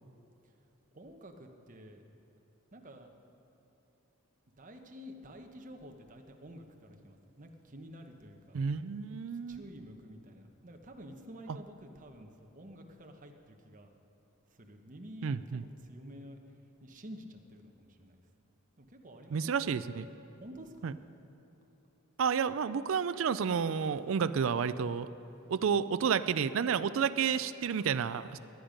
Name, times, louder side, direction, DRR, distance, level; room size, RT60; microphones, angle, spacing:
voice 1, 0.9-2.0 2.7-3.1 4.6-8.6 9.5-13.9 14.5-18.2 18.8-19.9 20.4-20.9, equal, 40° right, 4 dB, 1.1 m, -50 dB
voice 2, 8.5-9.6 15.2-15.6 19.3-20.0 20.8-20.9 22.2-25.1 25.5-28.4, right 6 dB, 65° right, 13 dB, 0.4 m, -30 dB
19.0 x 10.5 x 5.2 m, 2.9 s
head